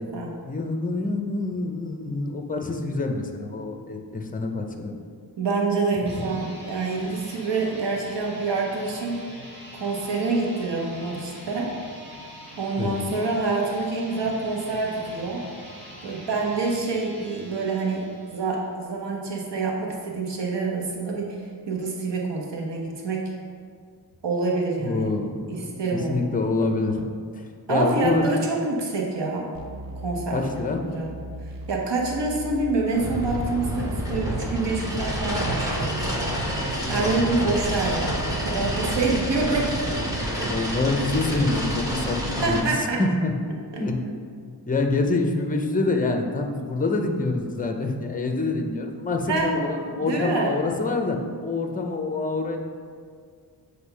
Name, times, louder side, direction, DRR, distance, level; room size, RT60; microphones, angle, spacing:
voice 1, 0.5-4.9 6.0-6.3 12.8-13.0 24.8-27.0 27.3-27.4 27.7-28.2 30.3-30.8 36.7-37.3 40.4-43.3 43.8-44.0 44.7-52.6, left 3 dB, 20° left, 4 dB, 0.6 m, -26 dB
voice 2, 5.4-9.2 9.8-11.7 12.6-15.4 16.0-18.0 18.3-21.4 21.7-23.2 24.2-25.1 25.5-26.3 27.7-29.5 30.0-31.1 31.4-36.2 36.9-40.0 40.4-40.5 42.4-43.0 43.7-43.8 49.3-49.5 50.0-50.6, right 3 dB, 80° right, -1 dB, 1.2 m, -27 dB
sound 1, 6.0-18.7, equal, 30° right, 1.7 m, -43 dB
sound 2, 29.5-40.2, right 1 dB, 55° right, 0.6 m, -38 dB
sound 3, 32.9-42.6, equal, 10° right, 1.1 m, -28 dB
8.0 x 2.7 x 5.5 m, 2.1 s
wide cardioid pair, 125°, 42 cm